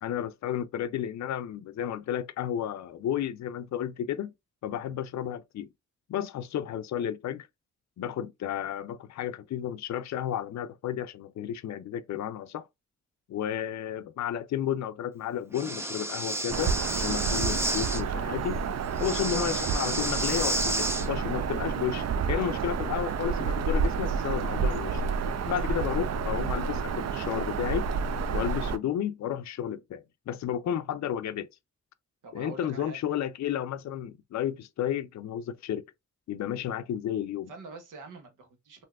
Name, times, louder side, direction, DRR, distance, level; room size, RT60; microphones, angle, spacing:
voice 1, 0.0-4.3 4.6-5.7 6.1-7.5 8.0-12.7 13.3-18.6 19.0-25.2 25.5-27.9 28.3-31.5 32.3-35.8 36.3-37.5, left 10 dB, 65° left, 0.4 m, -32 dB
Breathing, 15.5-18.0 19.0-21.1, right 1 dB, 10° right, 0.6 m, -31 dB
Bird vocalization bird call bird song, 16.5-28.8, right 5 dB, 60° right, 0.5 m, -30 dB
voice 2, 32.2-33.0 37.5-38.8, right 3 dB, 90° right, 1.0 m, -45 dB
3.4 x 2.6 x 2.3 m
cardioid pair, 65°, 30 cm